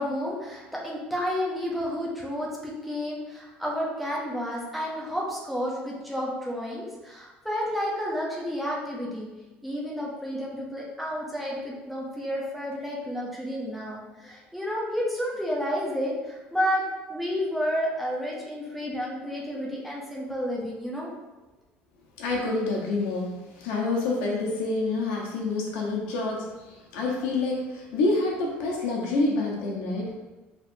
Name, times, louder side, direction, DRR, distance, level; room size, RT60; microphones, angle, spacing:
voice 1, 0.0-9.3 9.6-16.8 17.1-21.1, equal, ahead, -5 dB, 0.8 m, -31 dB
voice 2, 22.2-30.3, left 3 dB, 90° left, -2 dB, 1.1 m, -27 dB
4.5 x 3.5 x 2.7 m, 1.1 s
cardioid pair, 170°, 4 cm